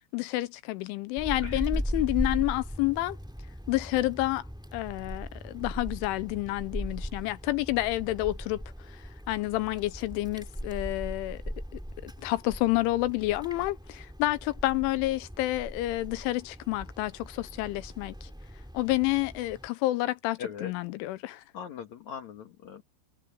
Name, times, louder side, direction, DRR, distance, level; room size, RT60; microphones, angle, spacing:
voice 1, 0.1-3.2 3.7-4.5 4.7-11.4 12.0-18.3 18.7-21.4, left 18 dB, 85° left, 3.1 m, -29 dB
Wind, 1.2-19.7, equal, ahead, 1.3 m, -39 dB
voice 2, 20.4-20.7 21.5-22.8, left 7 dB, 55° left, 2.3 m, -40 dB
omnidirectional pair, 5.6 m